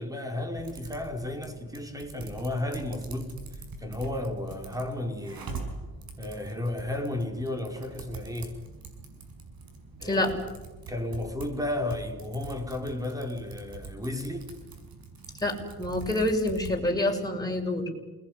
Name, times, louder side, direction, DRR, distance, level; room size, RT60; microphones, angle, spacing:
voice 1, 0.0-5.5 6.2-8.6 10.0-10.3 10.9-14.5, left 1 dB, 10° right, 5.0 m, -33 dB
Typing, 0.6-16.8, right 4 dB, 75° right, 6.9 m, -44 dB
voice 2, 15.4-17.9, left 1 dB, 10° left, 6.6 m, -27 dB
29.0 x 20.5 x 9.7 m
cardioid pair, 110°, 36 cm